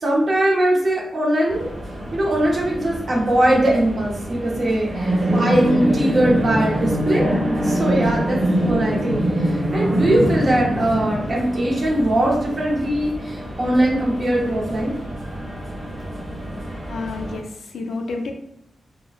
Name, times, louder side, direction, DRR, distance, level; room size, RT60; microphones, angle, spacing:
voice 1, 0.0-1.7 2.1-7.3 7.6-14.9, right 1 dB, 40° right, -3 dB, 0.7 m, -21 dB
sound 1, 1.5-17.4, equal, 55° right, 1.2 m, -25 dB
voice 2, 16.9-18.3, left 3 dB, 85° left, 3 dB, 0.4 m, -30 dB
2.7 x 2.0 x 2.3 m, 0.79 s
wide cardioid pair, 155°, 0 cm